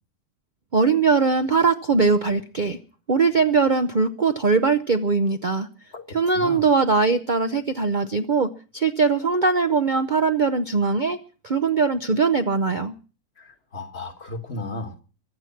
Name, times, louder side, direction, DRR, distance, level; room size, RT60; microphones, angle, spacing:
voice 1, 0.7-2.8 3.1-5.7 6.1-11.2 11.4-12.9, right 4 dB, 40° right, 0.7 m, -21 dB
voice 2, 6.3-6.7 13.4-14.9, left 2 dB, 40° left, 1.8 m, -34 dB
23.5 x 8.1 x 5.9 m
omnidirectional pair, 1.7 m